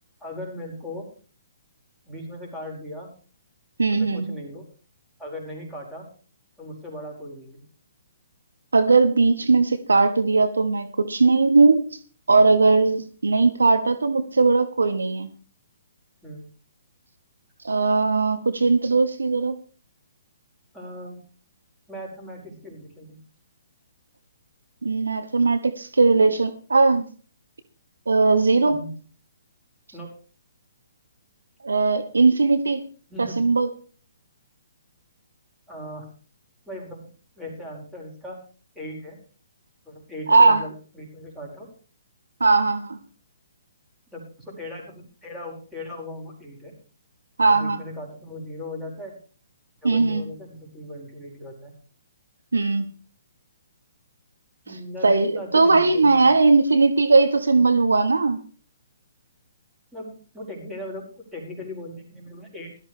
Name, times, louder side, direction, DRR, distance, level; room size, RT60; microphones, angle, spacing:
voice 1, 0.2-1.1 2.0-3.1 3.9-4.6 5.2-6.1 6.6-7.6 16.2-16.4 20.7-21.2 21.9-23.2 28.6-28.9 29.9-30.1 33.1-33.5 35.7-36.1 36.7-37.1 37.3-38.4 38.7-39.2 39.8-41.7 44.1-46.7 47.4-49.2 49.8-51.7 54.6-56.3 59.9-62.8, left 1 dB, ahead, -4 dB, 5.1 m, -38 dB
voice 2, 3.8-4.3 8.7-11.9 12.3-15.3 17.6-19.5 24.8-27.1 28.1-28.8 31.6-32.8 33.2-33.7 40.3-40.6 42.4-43.0 47.4-47.8 49.8-50.2 52.5-52.9 55.0-58.4, right 3 dB, 80° right, 9 dB, 1.3 m, -19 dB
17.0 x 13.0 x 3.3 m, 0.40 s
figure-of-eight pair, 130°, 0 cm